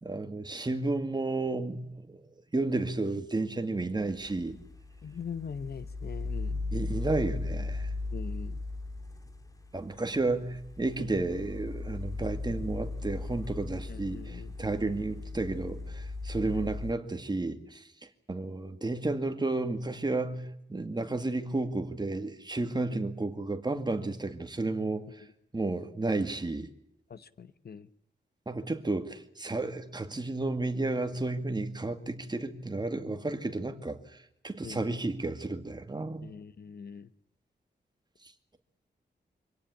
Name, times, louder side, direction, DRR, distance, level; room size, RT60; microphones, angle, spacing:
voice 1, 0.0-2.2 2.5-4.6 6.7-7.9 9.7-17.8 18.3-25.0 25.5-26.7 28.5-36.3, right 2 dB, 25° right, 2.1 m, -32 dB
sound 1, 4.0-16.9, left 3 dB, 20° left, 2.6 m, -37 dB
voice 2, 5.0-6.6 8.1-8.6 13.9-14.6 16.4-16.7 22.9-23.1 25.2-25.3 27.1-27.9 34.6-35.0 36.2-37.1, left 6 dB, 60° left, 1.0 m, -42 dB
25.5 x 17.5 x 9.9 m
wide cardioid pair, 140°, 18 cm